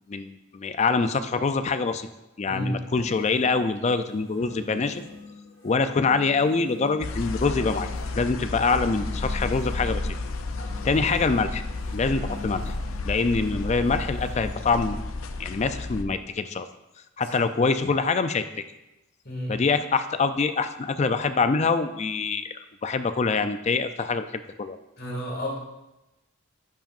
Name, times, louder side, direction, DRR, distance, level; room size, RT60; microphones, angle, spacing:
voice 1, 0.1-2.1 2.4-5.0 5.6-7.9 8.1-10.2 10.8-11.6 11.9-12.7 13.0-15.0 15.4-16.7 17.2-18.4 19.5-22.5 22.8-24.8, left 4 dB, 35° left, 10 dB, 0.4 m, -25 dB
voice 2, 2.5-2.8 10.8-11.0 17.2-17.4 19.2-19.6 25.0-25.6, equal, 50° left, -3 dB, 2.2 m, -32 dB
sound 1, 2.9-14.7, left 3 dB, 70° left, 3.0 m, -45 dB
sound 2, 7.0-16.0, left 2 dB, 90° left, 0.5 m, -32 dB
10.5 x 7.5 x 2.5 m, 0.97 s
head